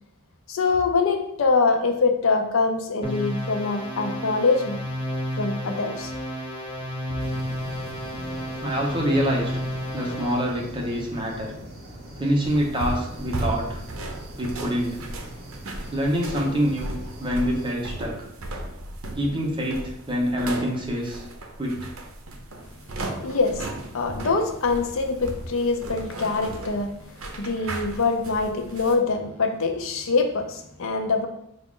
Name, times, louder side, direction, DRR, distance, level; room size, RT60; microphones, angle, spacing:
voice 1, 0.5-4.8 5.4-6.1 23.2-23.7 23.9-27.0 27.2-31.3, left 4 dB, 65° left, 5 dB, 0.5 m, -24 dB
sound 1, 3.0-10.6, equal, 25° left, 0.9 m, -32 dB
sound 2, 7.2-17.7, right 1 dB, 45° right, 1.0 m, -41 dB
voice 2, 8.6-9.5 9.9-11.5 12.2-13.8 14.4-15.0 15.9-16.9 17.2-18.2 19.2-21.2 21.6-21.9, equal, 25° right, -2 dB, 0.8 m, -26 dB
sound 3, 12.4-28.9, right 1 dB, 70° right, 0.6 m, -35 dB
4.8 x 2.4 x 3.6 m, 0.77 s
head